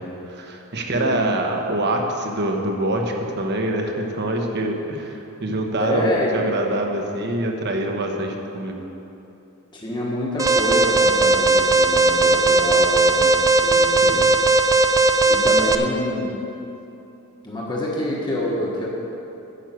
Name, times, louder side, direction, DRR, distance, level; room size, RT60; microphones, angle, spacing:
voice 1, 0.3-8.8 14.0-14.3, right 1 dB, 50° right, 2 dB, 1.1 m, -25 dB
voice 2, 5.8-6.4 9.7-14.2 15.3-16.4 17.4-18.9, left 1 dB, 20° left, -4 dB, 1.4 m, -27 dB
Alarm, 10.4-15.8, right 2 dB, 15° right, 0.4 m, -17 dB
10.0 x 6.3 x 7.7 m, 2.9 s
head